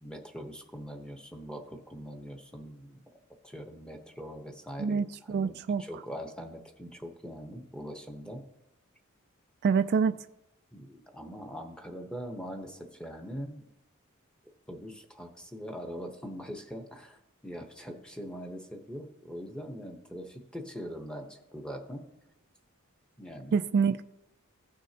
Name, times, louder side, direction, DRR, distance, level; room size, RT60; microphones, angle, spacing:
voice 1, 0.0-3.0 3.4-8.4 10.7-13.7 14.7-22.0 23.2-23.6, equal, 5° left, 1.0 m, -42 dB
voice 2, 4.8-5.8 9.6-10.2 23.5-24.0, right 5 dB, 50° right, 0.3 m, -26 dB
16.0 x 6.2 x 2.9 m
head